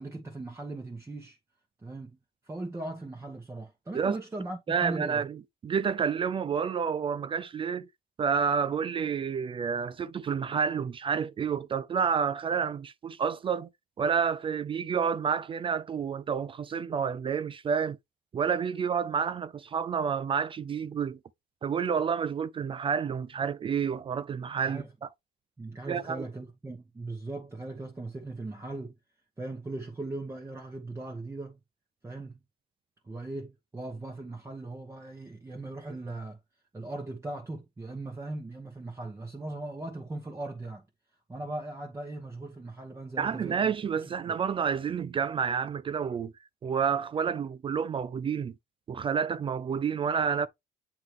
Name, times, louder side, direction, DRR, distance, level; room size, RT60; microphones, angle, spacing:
voice 1, 0.0-1.4 1.8-2.2 2.4-5.2 24.7-24.9 25.6-29.0 29.4-31.6 32.0-32.4 33.0-36.4 36.7-40.8 41.3-43.7 44.3-44.4 47.3-47.4, right 2 dB, 15° right, 1.2 m, -39 dB
voice 2, 4.7-5.4 5.6-7.9 8.2-13.7 14.0-18.0 18.3-21.2 21.6-25.1 25.9-26.2 43.2-46.3 46.6-48.5 48.9-50.5, right 6 dB, 30° right, 0.4 m, -29 dB
7.8 x 3.8 x 3.3 m
cardioid pair, 110°, 17 cm